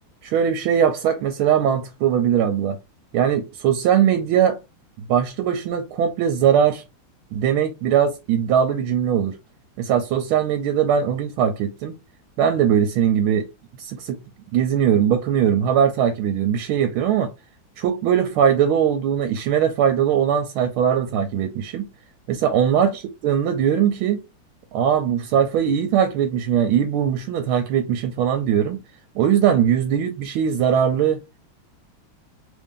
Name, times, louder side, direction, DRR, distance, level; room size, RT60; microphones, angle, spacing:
voice 1, 0.2-2.8 3.1-4.6 5.1-6.8 7.3-9.4 9.8-12.0 12.4-13.5 13.8-14.2 14.5-17.3 17.8-21.9 22.3-24.2 24.7-28.8 29.2-31.2, right 8 dB, 80° right, 1.4 m, -20 dB
3.4 x 2.6 x 3.6 m
omnidirectional pair, 2.4 m